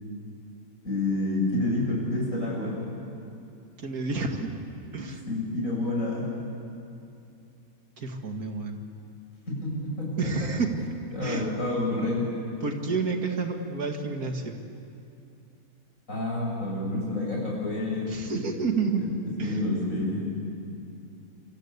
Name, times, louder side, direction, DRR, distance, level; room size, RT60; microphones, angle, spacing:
voice 1, 0.8-2.7 4.9-6.2 9.5-10.3 11.1-12.2 16.1-18.5 19.4-20.3, left 2 dB, 60° left, -2 dB, 8.2 m, -29 dB
voice 2, 3.8-4.5 4.9-5.2 8.0-8.8 10.2-10.7 11.2-11.5 12.6-14.6 18.1-19.1 19.4-19.6, right 4 dB, 75° right, 4 dB, 2.5 m, -30 dB
26.5 x 25.0 x 8.2 m, 2.6 s
omnidirectional pair, 1.6 m